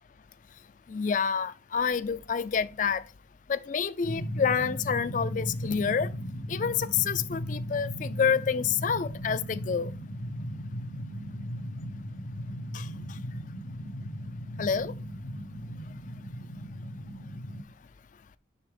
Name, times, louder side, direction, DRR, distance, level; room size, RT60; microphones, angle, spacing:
voice 1, 0.9-3.0 3.5-6.1 6.5-9.9 12.7-13.2 14.6-14.9, left 6 dB, 40° left, 0.3 m, -28 dB
sound 1, 4.0-17.6, equal, 80° left, 1.0 m, -37 dB
5.6 x 3.4 x 5.0 m
head